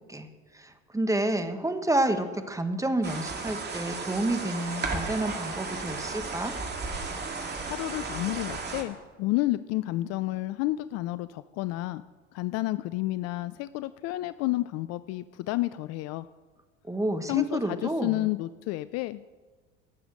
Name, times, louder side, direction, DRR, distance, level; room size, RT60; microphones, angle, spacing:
voice 1, 0.5-6.5 16.9-18.2, right 1 dB, 10° right, 8 dB, 1.3 m, -29 dB
sound 1, 3.0-8.8, right 3 dB, 30° right, 2.1 m, -34 dB
voice 2, 7.7-12.0 12.3-16.3 17.3-19.3, left 17 dB, 50° left, 15 dB, 0.5 m, -30 dB
17.5 x 6.8 x 6.3 m, 1.3 s
figure-of-eight pair, 65°, 34 cm